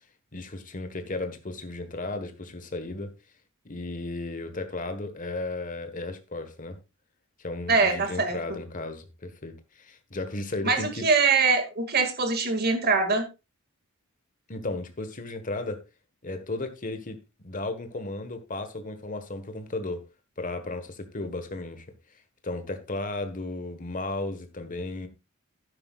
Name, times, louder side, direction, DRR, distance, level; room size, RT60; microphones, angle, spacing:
voice 1, 0.3-3.1 3.6-6.8 7.4-11.1 14.5-15.8 16.2-20.0 20.4-21.9 22.4-25.1, left 2 dB, 40° left, 1.4 m, -34 dB
voice 2, 7.7-8.4 10.6-13.3, right 4 dB, 45° right, 2.0 m, -23 dB
11.5 x 9.9 x 2.4 m
head